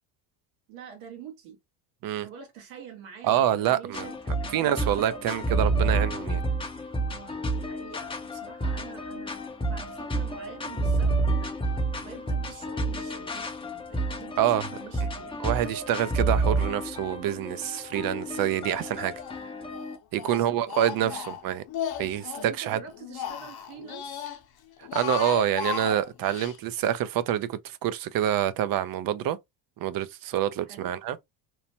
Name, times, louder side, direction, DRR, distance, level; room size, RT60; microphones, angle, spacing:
voice 1, 0.7-1.6 2.2-5.7 7.1-11.6 12.0-15.4 20.2-20.6 21.1-21.2 22.4-24.3 30.6-30.9, right 7 dB, 80° right, 1.3 m, -46 dB
voice 2, 3.2-4.1 4.5-6.4 14.4-14.6 15.4-19.1 20.1-21.6 22.0-22.8 24.9-29.4 29.8-31.2, right 11 dB, 50° right, 0.4 m, -26 dB
sound 1, 3.9-20.0, right 2 dB, 10° left, 0.5 m, -30 dB
Speech, 18.7-19.4 19.7-22.5 22.9-24.4 24.8-26.6, left 9 dB, 50° left, 0.8 m, -35 dB
3.0 x 2.1 x 2.6 m
supercardioid pair, 95°, 47 cm